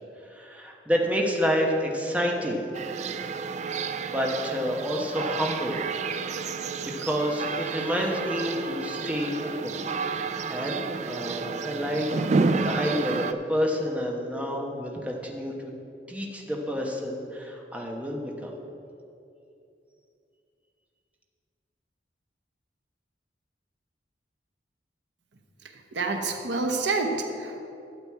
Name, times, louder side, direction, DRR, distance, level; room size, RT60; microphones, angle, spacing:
voice 1, 0.2-2.7 4.0-5.9 6.8-9.8 10.2-15.7 16.1-18.5, equal, 10° right, 0 dB, 1.0 m, -29 dB
sound 1, 2.7-13.3, right 4 dB, 40° right, 0.4 m, -30 dB
voice 2, 25.9-27.6, right 3 dB, 80° right, 4 dB, 1.0 m, -28 dB
12.0 x 7.9 x 4.7 m, 2.6 s
head